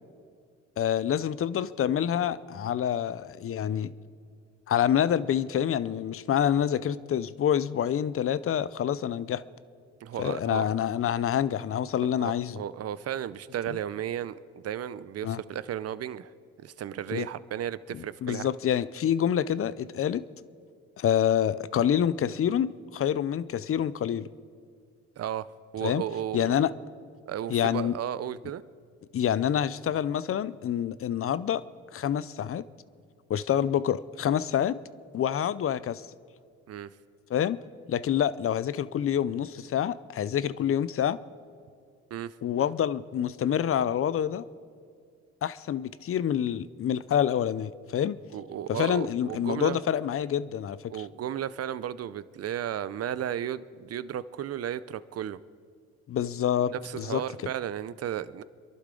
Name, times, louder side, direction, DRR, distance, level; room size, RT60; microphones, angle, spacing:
voice 1, 0.8-3.9 4.7-9.4 10.2-12.6 15.2-15.4 17.1-17.3 17.9-20.2 21.0-24.3 25.8-26.0 26.3-26.7 27.5-27.9 29.1-31.6 31.9-32.6 33.3-34.8 35.1-36.0 37.3-37.6 37.9-41.2 42.4-44.5 45.4-48.2 48.7-50.9 56.1-57.2, left 9 dB, 45° left, 17 dB, 0.6 m, -27 dB
voice 2, 10.0-10.6 12.2-16.3 16.6-18.5 25.2-25.5 25.7-26.7 27.3-28.6 36.7-36.9 42.1-42.3 48.3-49.8 50.9-55.4 56.7-58.4, right 10 dB, 55° right, 16 dB, 0.6 m, -34 dB
29.5 x 11.5 x 3.8 m, 2.2 s
cardioid pair, 90°, 30 cm